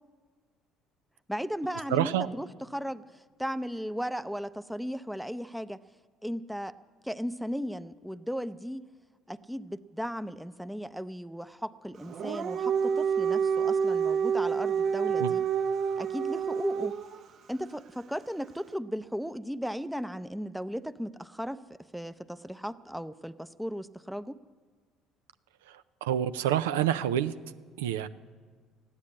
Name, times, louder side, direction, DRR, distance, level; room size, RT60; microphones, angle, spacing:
voice 1, 1.3-5.8 6.2-6.7 7.0-8.9 9.3-15.4 16.0-16.9 17.5-24.4, equal, ahead, 13 dB, 0.5 m, -36 dB
voice 2, 1.9-2.3 15.2-15.3 26.0-27.3 27.8-28.1, right 11 dB, 90° right, 12 dB, 0.4 m, -27 dB
Dog, 12.0-17.2, right 7 dB, 60° right, 0.7 m, -28 dB
15.0 x 9.8 x 8.6 m, 1.5 s
hypercardioid pair, 70°, 0 cm